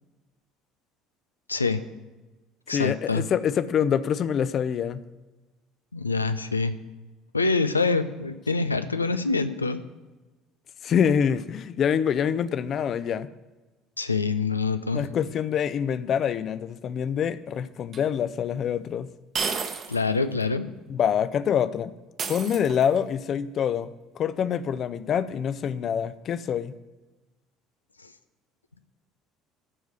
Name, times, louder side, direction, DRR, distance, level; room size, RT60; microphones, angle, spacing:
voice 1, 1.5-1.8 2.7-3.2 5.9-6.7 7.3-9.8 14.0-15.0 19.9-20.7, left 4 dB, 90° left, 11 dB, 0.5 m, -25 dB
voice 2, 2.7-5.0 10.8-13.3 14.9-19.1 20.9-21.9 22.3-26.8, left 8 dB, 45° left, 14 dB, 0.6 m, -26 dB
sound 1, 17.9-18.0 19.3-20.1 20.4-20.5 22.2-23.1, right 5 dB, 40° right, 1.2 m, -31 dB
13.5 x 4.8 x 7.8 m, 1.2 s
figure-of-eight pair, 60°, 0 cm